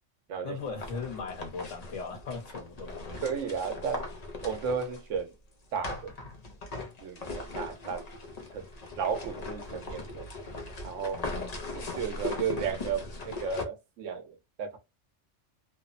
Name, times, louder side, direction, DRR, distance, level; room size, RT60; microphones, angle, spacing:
voice 1, 0.4-3.2 11.1-11.5, left 4 dB, 85° left, 1.3 m, -39 dB
sound 1, 0.6-5.2 5.8-13.6, left 2 dB, 45° left, 0.5 m, -39 dB
voice 2, 3.2-4.1 4.4-5.3 5.7-6.1 7.0-8.0 8.5-8.6 9.0-10.2 10.8-11.2 11.7-14.8, right 6 dB, 85° right, 1.1 m, -34 dB
3.1 x 2.0 x 2.4 m
omnidirectional pair, 1.3 m